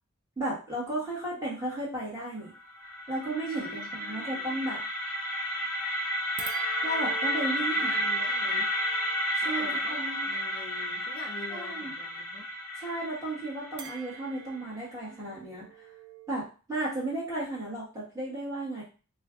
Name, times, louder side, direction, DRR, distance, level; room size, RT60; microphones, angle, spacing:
voice 1, 0.4-2.5 3.1-4.8 6.8-8.0 8.4-8.6 9.4-10.3 11.5-11.9 12.8-15.7 16.3-18.8, right 2 dB, 15° right, -7 dB, 1.2 m, -34 dB
sound 1, 2.5-14.5, equal, 10° left, 0.8 m, -32 dB
voice 2, 3.5-4.4 7.6-8.7 9.4-10.0 10.3-12.5, left 3 dB, 40° left, 1 dB, 0.4 m, -46 dB
sound 2, 6.4-10.9 13.8-16.3, right 8 dB, 50° right, 0.4 m, -46 dB
2.5 x 2.3 x 3.5 m, 0.35 s
head